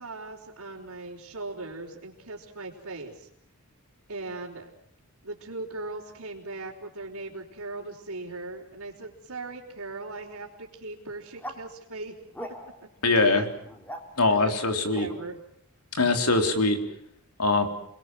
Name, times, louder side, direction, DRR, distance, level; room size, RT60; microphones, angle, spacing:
voice 1, 0.0-3.3 4.1-4.7 5.2-12.1 12.5-12.6 12.8-12.9 13.2-13.5 14.3-15.4, right 2 dB, 75° right, -6 dB, 4.0 m, -39 dB
sound 1, 11.4-11.6 12.3-12.9 13.6-14.0 15.0-15.1, equal, 10° left, 3.5 m, -39 dB
voice 2, 13.0-13.5 14.2-15.1 16.0-16.8 17.4-17.7, left 3 dB, 90° left, 5 dB, 3.7 m, -22 dB
30.0 x 21.0 x 7.7 m, 0.70 s
head